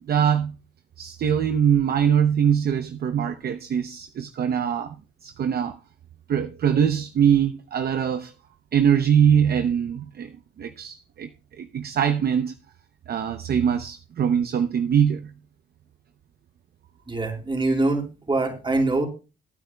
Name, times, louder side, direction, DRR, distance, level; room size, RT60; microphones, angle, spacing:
voice 1, 0.1-0.6 1.0-5.0 5.2-5.8 6.3-8.3 8.7-10.3 10.6-11.3 11.6-12.5 13.1-15.3, right 8 dB, 50° right, 0.7 m, -22 dB
voice 2, 17.1-19.1, right 2 dB, 25° right, 3.8 m, -24 dB
22.5 x 9.0 x 2.2 m
cardioid pair, 90°, 20 cm